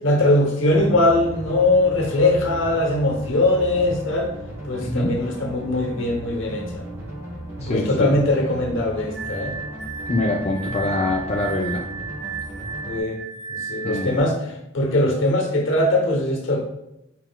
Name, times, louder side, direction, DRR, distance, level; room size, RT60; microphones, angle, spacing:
voice 1, 0.0-4.3 4.6-6.8 7.6-9.5 12.9-13.2 13.5-14.4 14.7-16.6, left 2 dB, 70° left, 1 dB, 0.9 m, -21 dB
sound 1, 0.6-13.0, right 1 dB, 15° right, 0.9 m, -36 dB
voice 2, 4.8-5.1 7.6-8.1 10.1-11.8 13.8-14.2, left 2 dB, 30° left, -2 dB, 0.4 m, -24 dB
Glass, 9.2-14.2, right 4 dB, 60° right, 0.7 m, -33 dB
4.3 x 4.1 x 2.2 m, 0.87 s
head